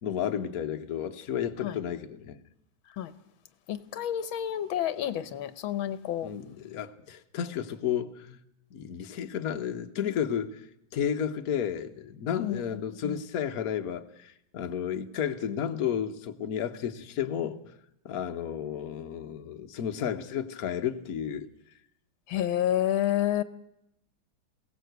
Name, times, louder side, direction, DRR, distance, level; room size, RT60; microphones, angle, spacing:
voice 1, 0.0-2.4 6.2-8.4 8.7-10.6 10.9-17.6 18.0-21.5, left 8 dB, 50° left, 1.4 m, -32 dB
voice 2, 3.7-6.3 12.4-12.6 13.0-13.2 22.3-23.4, left 11 dB, 90° left, 1.8 m, -29 dB
22.0 x 17.0 x 8.1 m
omnidirectional pair, 2.2 m